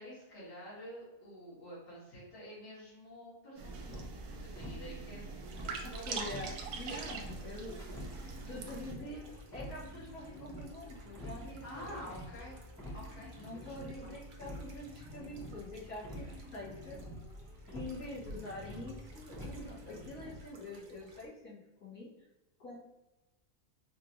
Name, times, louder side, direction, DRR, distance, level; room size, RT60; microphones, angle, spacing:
voice 1, 0.0-5.3 5.6-6.4 11.6-12.6 12.9-13.7 14.0-14.1, equal, 90° left, -9 dB, 2.3 m, -49 dB
sound 1, 3.6-20.4, equal, 5° left, 0.4 m, -47 dB
sound 2, 3.6-8.9, right 5 dB, 75° right, 1.1 m, -43 dB
sound 3, 5.4-21.3, right 1 dB, 60° right, 0.9 m, -58 dB
voice 2, 5.8-7.8 8.5-12.2 13.4-17.0 17.7-22.1 22.6-22.8, left 1 dB, 65° left, -11 dB, 2.2 m, -46 dB
4.3 x 2.6 x 2.9 m, 1.0 s
omnidirectional pair, 1.7 m